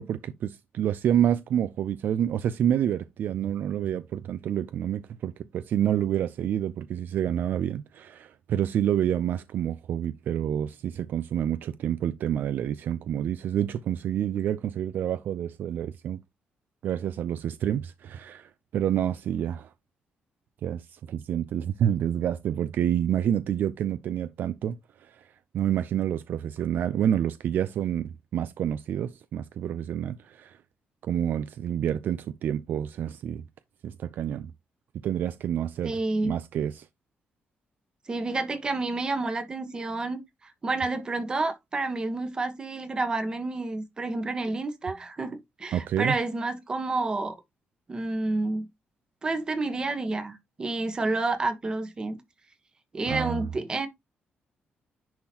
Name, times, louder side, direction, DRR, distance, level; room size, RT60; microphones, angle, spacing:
voice 1, 0.0-16.2 16.8-19.7 20.6-25.2 25.5-30.6 31.0-33.5 33.8-34.5 35.0-36.9 45.7-46.1 53.1-53.5, right 10 dB, 60° right, 0.4 m, -28 dB
voice 2, 35.8-36.3 38.1-47.3 47.9-48.6 49.2-52.2 52.9-53.9, right 3 dB, 25° right, 1.2 m, -29 dB
10.5 x 3.8 x 2.9 m
cardioid pair, 165°, 4 cm